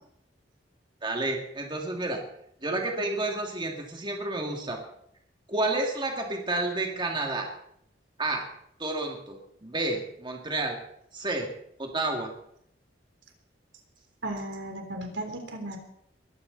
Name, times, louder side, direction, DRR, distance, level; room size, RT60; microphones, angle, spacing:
voice 1, 1.0-2.2 2.6-4.8 5.5-7.5 8.2-8.4 8.8-10.8 11.1-11.5 11.8-12.3, right 2 dB, 25° right, 1 dB, 2.5 m, -30 dB
voice 2, 14.2-15.8, right 1 dB, 85° right, 4 dB, 3.5 m, -35 dB
21.5 x 15.0 x 4.1 m, 0.73 s
head